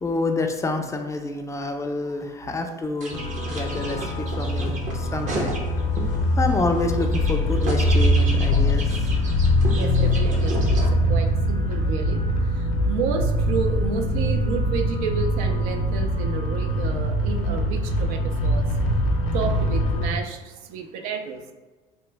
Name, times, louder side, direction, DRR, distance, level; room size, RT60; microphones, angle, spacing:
voice 1, 0.0-3.2 3.5-5.6 6.0-9.1, left 3 dB, 20° left, 5 dB, 0.3 m, -28 dB
sound 1, 3.0-6.1 6.5-10.9, right 2 dB, 45° right, 0.8 m, -33 dB
sound 2, 3.1-20.1, left 1 dB, 80° left, 0.6 m, -23 dB
voice 2, 9.7-18.7 19.3-21.4, right 5 dB, 75° right, 5 dB, 0.4 m, -31 dB
2.9 x 2.2 x 3.3 m, 1.2 s
hypercardioid pair, 80°, 17 cm